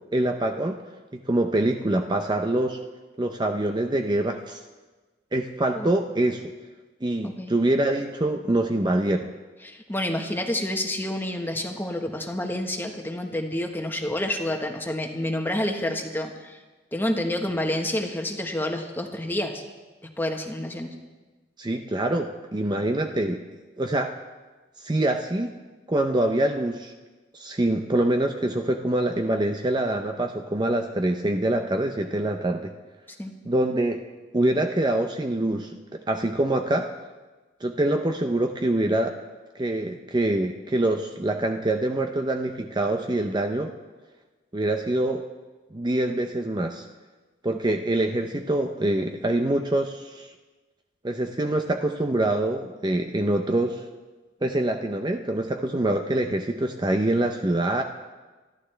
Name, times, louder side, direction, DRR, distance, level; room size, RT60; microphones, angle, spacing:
voice 1, 0.1-0.8 1.3-2.8 3.2-4.6 5.3-6.5 7.0-9.3 21.6-23.4 23.8-24.1 24.8-25.5 25.9-26.9 27.3-32.7 33.5-34.0 34.3-36.9 37.6-39.2 39.5-43.7 44.5-45.2 45.7-46.8 47.4-50.3 51.0-53.9 54.4-57.8, right 1 dB, 25° right, 4 dB, 0.6 m, -25 dB
voice 2, 9.6-16.6 16.9-19.6 20.2-20.9 33.2-33.3, left 1 dB, 10° left, 3 dB, 1.3 m, -29 dB
25.5 x 11.5 x 3.4 m, 1.3 s
head